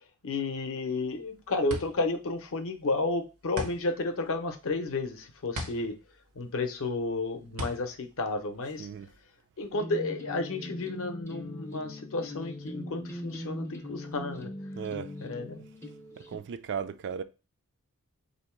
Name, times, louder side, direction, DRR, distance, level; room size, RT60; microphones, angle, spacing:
voice 1, 0.0-6.0 6.3-8.9 9.6-14.5 15.2-15.6, left 3 dB, 65° left, 0.7 m, -32 dB
sound 1, 0.9-9.2, left 1 dB, 90° right, 0.9 m, -41 dB
voice 2, 8.8-9.1 14.8-15.1 16.2-17.2, right 7 dB, 55° right, 0.3 m, -36 dB
sound 2, 9.7-16.4, left 1 dB, 10° left, 0.4 m, -41 dB
3.6 x 2.7 x 4.4 m
head